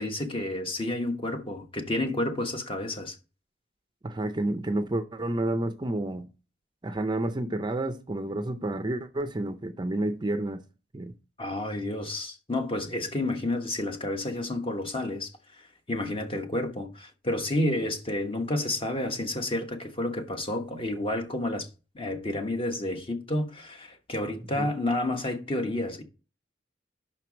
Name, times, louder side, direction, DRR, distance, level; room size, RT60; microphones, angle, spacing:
voice 1, 0.0-3.2 11.4-21.7 21.9-26.0, left 1 dB, 30° left, 1.2 m, -30 dB
voice 2, 4.0-6.3 6.8-10.6 10.9-11.1 24.6-24.7, right 1 dB, 25° right, 0.5 m, -30 dB
5.8 x 4.5 x 6.1 m
head